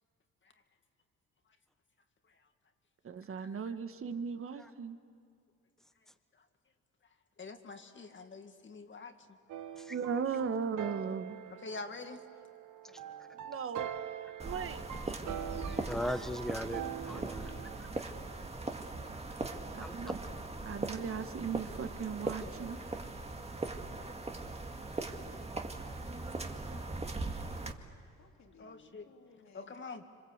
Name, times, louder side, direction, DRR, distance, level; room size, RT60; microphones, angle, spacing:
voice 1, 3.0-5.0 9.9-11.4 13.4-13.9 14.4-14.8 15.5-15.7 19.8-20.2 20.6-22.8, right 6 dB, 45° right, 9 dB, 1.6 m, -37 dB
voice 2, 7.4-9.2 11.5-12.2 15.7-16.2 16.7-16.8 28.6-29.1 29.5-30.0, left 3 dB, 40° left, 6 dB, 2.1 m, -46 dB
sound 1, 9.5-17.8, right 10 dB, 75° right, 1.2 m, -44 dB
voice 3, 12.9-13.5 19.4-20.1 28.2-29.7, left 6 dB, 60° left, 1 dB, 3.2 m, -61 dB
sound 2, 14.4-27.7, right 3 dB, 20° right, 1.9 m, -40 dB
voice 4, 15.9-17.7 19.8-20.0, equal, ahead, 9 dB, 1.4 m, -38 dB
26.5 x 26.0 x 8.1 m, 2.4 s
cardioid pair, 90°, 30 cm